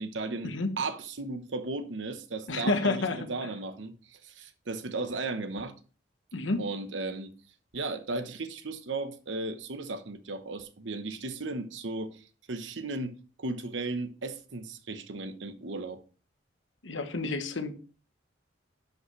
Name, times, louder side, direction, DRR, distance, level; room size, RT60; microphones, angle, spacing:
voice 1, 0.0-5.7 6.6-7.3 7.7-16.0, right 3 dB, 80° right, 1.0 m, -36 dB
voice 2, 2.5-3.2 6.3-6.6 16.8-17.7, left 3 dB, 85° left, 1.1 m, -29 dB
10.5 x 5.5 x 3.2 m
head